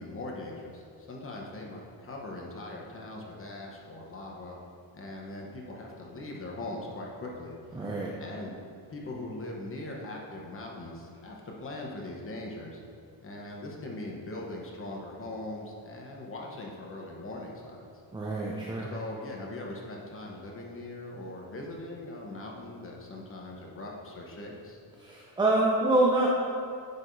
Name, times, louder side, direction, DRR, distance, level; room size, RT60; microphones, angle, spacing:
voice 1, 0.0-4.6 4.9-7.8 8.2-8.6 8.9-12.8 13.2-17.9 18.9-24.8, left 2 dB, 25° left, -1 dB, 1.0 m, -40 dB
voice 2, 7.7-8.1 18.1-18.9 25.0-26.3, right 2 dB, 10° right, -3 dB, 0.5 m, -26 dB
9.4 x 4.8 x 2.7 m, 2.5 s
cardioid pair, 130°, 48 cm